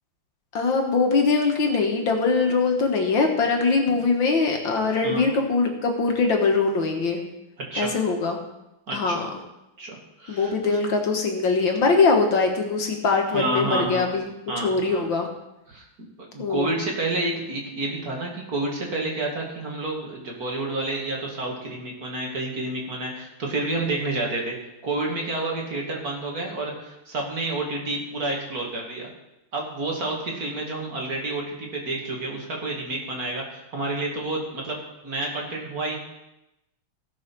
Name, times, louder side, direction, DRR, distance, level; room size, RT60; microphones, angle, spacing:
voice 1, 0.5-7.2 7.8-8.4 8.9-9.3 10.3-14.3 14.6-15.3 16.4-16.7, left 4 dB, 65° left, 3 dB, 2.1 m, -22 dB
voice 2, 8.9-9.2 9.8-10.8 13.3-14.1 14.5-15.0 15.7-15.9 16.2-24.6 24.8-29.1 29.5-36.0, right 2 dB, 45° right, -1 dB, 2.6 m, -29 dB
16.5 x 5.7 x 6.1 m, 0.91 s
omnidirectional pair, 2.3 m